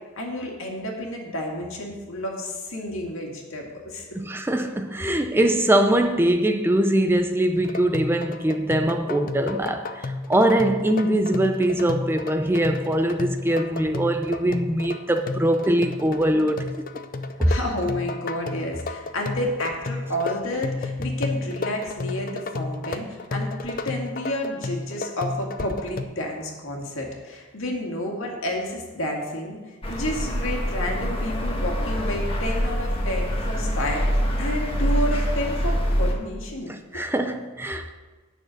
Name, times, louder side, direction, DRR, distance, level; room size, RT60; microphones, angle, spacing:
voice 1, 0.2-4.1 17.5-37.1, left 1 dB, 75° left, 2.1 m, -30 dB
voice 2, 4.2-16.7 17.4-17.6 36.7-37.9, right 1 dB, 10° right, 0.5 m, -22 dB
sound 1, 7.5-26.0, left 3 dB, 45° left, 0.5 m, -32 dB
sound 2, 29.8-36.1, equal, 25° left, 1.4 m, -25 dB
9.6 x 6.4 x 6.4 m
head